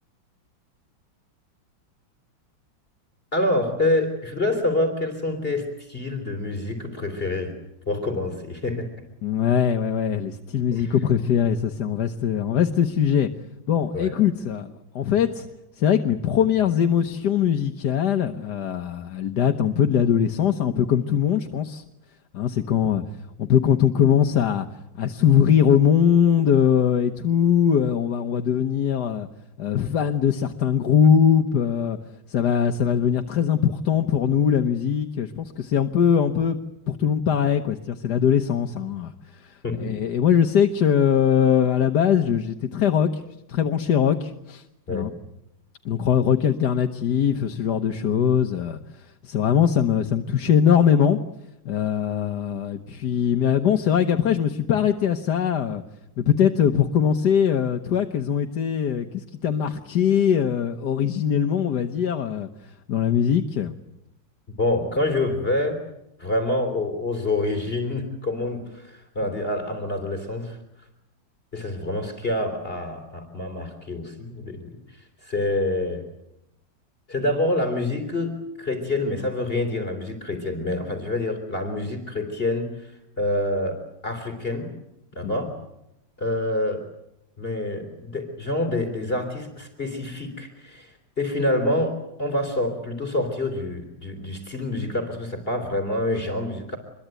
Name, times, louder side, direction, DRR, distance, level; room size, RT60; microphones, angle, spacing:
voice 1, 3.3-7.5 7.9-8.9 10.7-10.9 13.9-14.1 22.8-22.9 39.6-39.9 44.9-45.1 64.6-65.8 66.2-70.6 71.5-74.8 75.2-76.0 77.1-82.9 83.2-83.8 84.0-84.7 85.1-85.6 86.2-86.9 87.4-96.8, left 1 dB, 30° left, 6 dB, 3.7 m, -27 dB
voice 2, 9.2-13.3 13.7-15.5 15.8-21.8 22.3-23.0 23.4-24.7 25.0-29.3 29.6-32.0 32.3-36.6 36.9-43.1 43.5-44.6 44.9-45.1 45.8-51.2 51.6-55.8 56.2-62.5 62.9-63.7 85.2-85.3, left 8 dB, 65° left, 6 dB, 1.7 m, -21 dB
26.0 x 22.0 x 9.0 m, 0.87 s
omnidirectional pair, 2.0 m